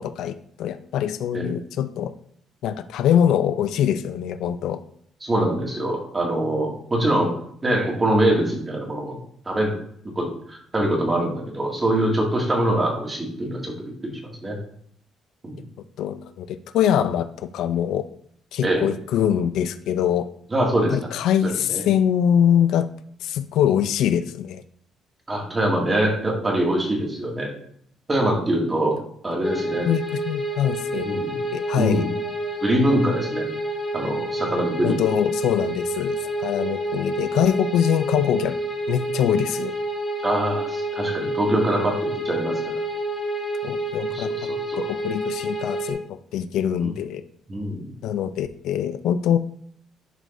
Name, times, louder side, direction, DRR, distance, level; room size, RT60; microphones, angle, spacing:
voice 1, 0.0-2.1 2.6-4.8 16.0-18.0 18.5-20.3 20.9-22.9 23.2-24.6 29.9-31.2 31.5-32.1 34.8-38.6 38.9-39.7 43.6-44.5 44.8-47.2 48.0-49.4, left 9 dB, 80° left, 11 dB, 0.5 m, -23 dB
voice 2, 5.2-7.3 7.6-9.2 9.5-9.7 10.2-14.6 15.4-15.6 18.6-18.9 20.5-21.1 21.4-21.8 25.3-27.5 28.1-29.0 29.2-29.9 31.0-31.4 31.8-32.1 32.6-33.5 33.9-34.9 40.2-42.6 44.0-44.8 46.8-46.9 47.5-47.9, right 1 dB, 20° right, -1 dB, 2.3 m, -24 dB
sound 1, 29.4-45.9, right 1 dB, 25° left, 2.3 m, -28 dB
11.0 x 5.2 x 2.7 m, 0.64 s
cardioid pair, 115°, 0 cm